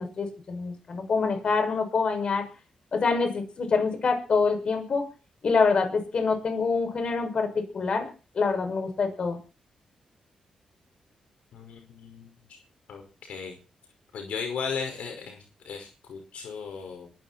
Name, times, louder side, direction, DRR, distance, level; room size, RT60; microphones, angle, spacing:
voice 1, 0.0-2.5 2.9-5.1 5.4-8.1 8.3-9.4, left 4 dB, 50° left, 6 dB, 6.4 m, -26 dB
voice 2, 11.5-12.6 12.9-13.5 14.1-17.1, left 5 dB, 80° left, 4 dB, 5.3 m, -36 dB
22.5 x 14.0 x 4.4 m, 0.35 s
cardioid pair, 110°, 2 cm